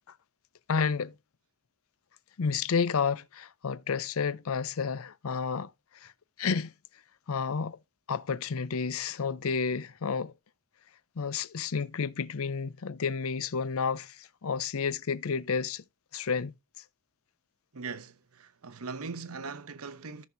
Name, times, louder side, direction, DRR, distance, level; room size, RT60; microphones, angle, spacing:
voice 1, 0.7-1.1 2.4-5.7 6.0-6.1 6.4-6.7 7.3-7.8 8.1-10.3 11.2-15.8 16.1-16.5, left 5 dB, 75° left, 0.5 m, -30 dB
voice 2, 17.7-20.3, right 4 dB, 80° right, 0.9 m, -40 dB
14.0 x 6.3 x 2.6 m
head